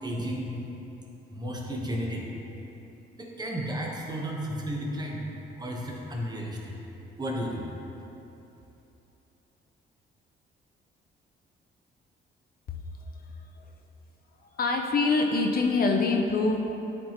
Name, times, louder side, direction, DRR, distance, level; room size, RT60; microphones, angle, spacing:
voice 1, 0.0-0.7 1.3-2.3 3.2-6.7 7.2-7.6, equal, 20° right, -2 dB, 1.1 m, -33 dB
voice 2, 14.5-16.6, left 3 dB, 50° left, 2 dB, 0.6 m, -24 dB
9.8 x 4.2 x 3.0 m, 3.0 s
cardioid pair, 90°, 20 cm